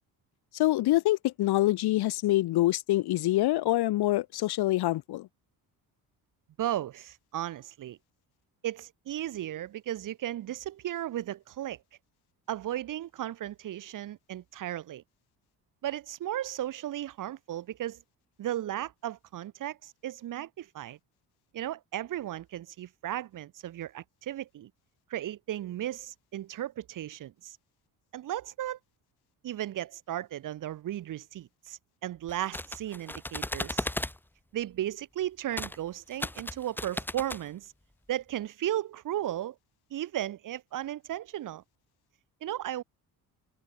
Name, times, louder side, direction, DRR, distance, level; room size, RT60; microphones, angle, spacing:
voice 1, 0.5-5.3, left 16 dB, 85° left, 2.3 m, -25 dB
voice 2, 6.6-8.0 8.6-11.8 12.5-15.0 15.8-18.0 18.4-21.0 21.5-24.7 25.1-27.6 28.1-28.8 29.4-33.9 34.5-37.7 38.1-39.5 39.9-41.6 42.4-42.8, right 12 dB, 55° right, 1.4 m, -35 dB
sound 1, 32.3-34.2 35.5-35.8 36.1-37.4, left 1 dB, 5° left, 2.1 m, -35 dB
cardioid pair, 150°, 37 cm